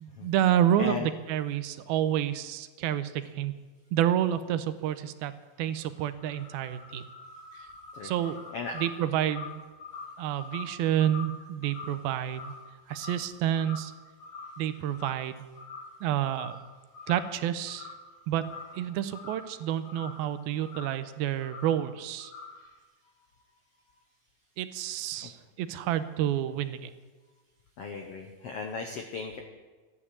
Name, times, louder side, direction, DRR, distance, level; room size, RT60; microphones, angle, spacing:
voice 1, 0.0-3.5 3.9-5.3 5.6-7.0 7.5-7.7 8.0-8.4 8.7-9.6 10.2-12.5 12.9-13.9 14.6-15.4 16.0-16.6 17.1-17.9 18.3-18.5 18.7-22.3 24.6-26.9, right 11 dB, 90° right, 12 dB, 2.6 m, -29 dB
voice 2, 0.8-1.1 7.9-8.1 8.5-8.8 25.2-25.3 27.8-29.4, left 4 dB, 90° left, 4 dB, 1.3 m, -36 dB
sound 1, 5.6-13.3 13.5-14.0 14.2-15.3 15.5-15.9 16.2-16.7 16.9-18.1 18.3-20.3 20.6-21.0 21.4-21.8 22.2-22.7, left 4 dB, 65° left, 4.1 m, -45 dB
13.5 x 10.0 x 8.5 m, 1.3 s
omnidirectional pair, 4.4 m